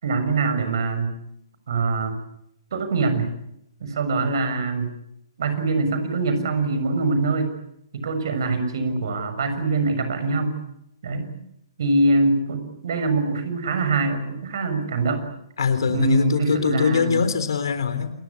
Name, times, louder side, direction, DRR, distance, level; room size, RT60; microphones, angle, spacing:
voice 1, 0.0-1.1 1.7-2.2 2.7-3.3 3.8-4.9 5.4-7.5 7.9-10.5 11.0-11.3 11.8-15.2 15.9-17.2, right 3 dB, 55° right, 9 dB, 6.7 m, -23 dB
voice 2, 15.6-18.1, left 6 dB, 60° left, 11 dB, 3.7 m, -22 dB
28.0 x 22.0 x 8.5 m, 0.80 s
figure-of-eight pair, 125°, 3 cm